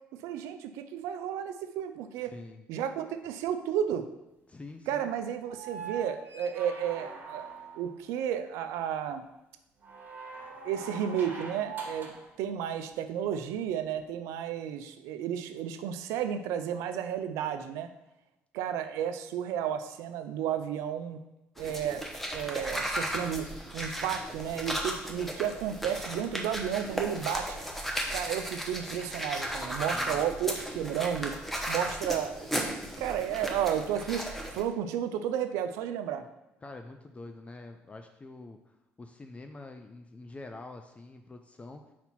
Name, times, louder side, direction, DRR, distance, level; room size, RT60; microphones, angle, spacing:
voice 1, 0.2-2.3 2.7-4.1 4.9-7.5 7.8-9.2 10.6-17.9 18.5-21.2 21.6-22.1 22.3-23.5 23.7-27.6 28.1-31.3 31.7-34.2 34.5-36.3, right 9 dB, 85° right, 9 dB, 0.5 m, -32 dB
voice 2, 2.2-2.6 4.5-5.1 29.9-30.2 36.6-41.8, left 2 dB, 25° left, 5 dB, 0.5 m, -46 dB
sound 1, 5.5-8.0 9.8-12.3 13.9-14.0, right 4 dB, 40° right, 1.5 m, -42 dB
sound 2, 21.6-34.6, equal, 5° left, 1.0 m, -35 dB
4.4 x 4.2 x 5.7 m, 0.92 s
supercardioid pair, 75°, 5 cm